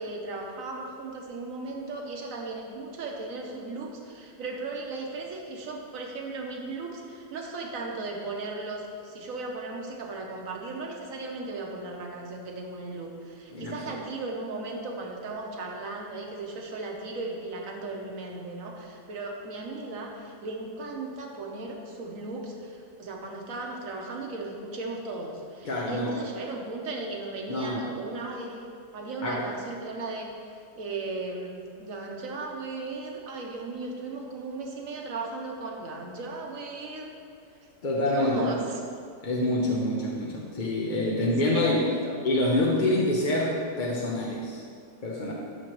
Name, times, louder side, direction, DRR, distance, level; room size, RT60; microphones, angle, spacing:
voice 1, 0.0-37.1 38.0-38.8 41.2-42.2, right 3 dB, 55° right, 1 dB, 1.3 m, -36 dB
voice 2, 25.6-26.1 27.5-27.9 29.2-29.5 37.8-38.6 39.2-41.9 42.2-44.6 45.0-45.3, left 1 dB, 45° left, -3 dB, 0.6 m, -26 dB
12.5 x 6.3 x 3.0 m, 2.3 s
omnidirectional pair, 1.8 m